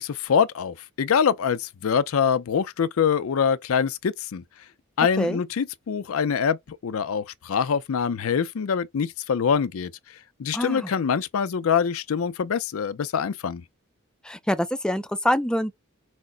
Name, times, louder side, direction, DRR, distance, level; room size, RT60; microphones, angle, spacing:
voice 1, 0.0-4.4 5.0-9.9 10.4-13.6, left 7 dB, 85° left, 0.4 m, -24 dB
voice 2, 10.5-10.9 14.2-15.7, equal, 5° left, 0.4 m, -25 dB
6.0 x 2.1 x 3.8 m
head